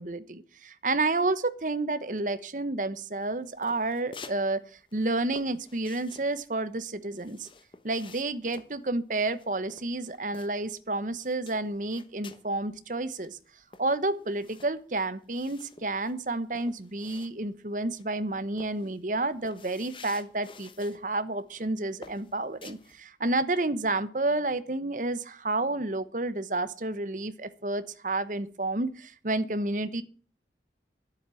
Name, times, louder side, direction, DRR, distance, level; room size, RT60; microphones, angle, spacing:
voice 1, 0.0-4.6 4.9-7.5 7.8-13.4 13.8-30.0, right 2 dB, 45° right, 14 dB, 1.0 m, -30 dB
sound 1, 3.2-4.4 4.7-10.8 11.1-12.5 12.9-13.0 13.2-17.7 18.0-18.2 18.6-21.0 21.4-21.6 22.0-23.0, left 4 dB, 30° left, 1.1 m, -50 dB
11.0 x 8.1 x 7.7 m, 0.41 s
head